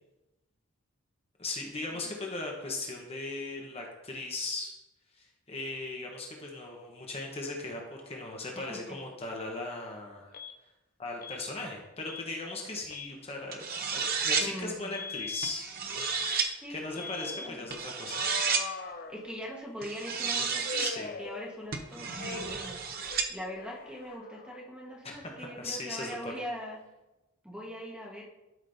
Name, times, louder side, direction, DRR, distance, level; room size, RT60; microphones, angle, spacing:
voice 1, 1.4-4.7 5.1-10.3 11.0-18.3 20.8-21.1 25.0-26.4, left 2 dB, 30° left, 0 dB, 1.1 m, -38 dB
voice 2, 8.5-9.0 14.4-14.9 16.6-17.7 19.1-20.9 21.2-22.8 23.3-26.8 27.4-28.2, equal, 5° right, -2 dB, 1.3 m, -41 dB
Alarm, 10.3-10.5 11.2-11.4 12.0-12.3 12.8-13.1 14.0-14.2 14.9-15.5 16.0-16.5 17.0-17.5 18.1-19.6 20.6-21.8 22.2-22.7 23.0-24.7, left 5 dB, 45° left, 0.6 m, -41 dB
sound 1, 13.5-14.5 15.4-16.5 17.7-18.7 19.8-21.0 21.7-23.3, right 5 dB, 45° right, 0.7 m, -31 dB
12.0 x 5.2 x 2.7 m, 0.98 s
head